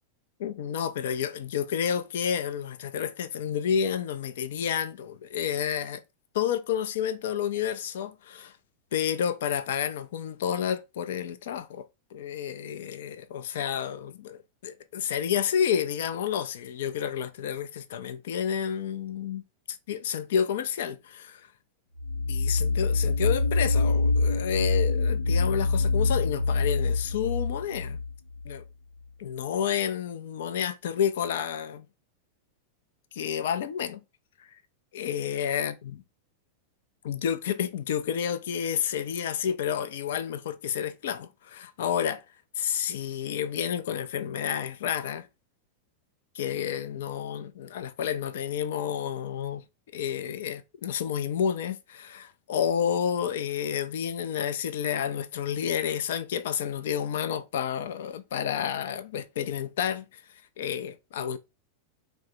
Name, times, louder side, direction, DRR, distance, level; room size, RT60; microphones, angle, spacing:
voice 1, 0.4-6.0 6.3-8.5 8.9-19.4 19.7-21.4 22.3-28.0 28.4-28.6 29.2-31.8 33.1-34.0 34.9-36.0 37.0-42.2 42.6-45.3 46.3-49.6 49.9-60.2 60.6-61.4, left 8 dB, 55° left, 0.4 m, -30 dB
sound 1, 22.0-28.6, left 3 dB, 75° left, 0.7 m, -25 dB
4.3 x 2.1 x 3.2 m
figure-of-eight pair, 90°, 0 cm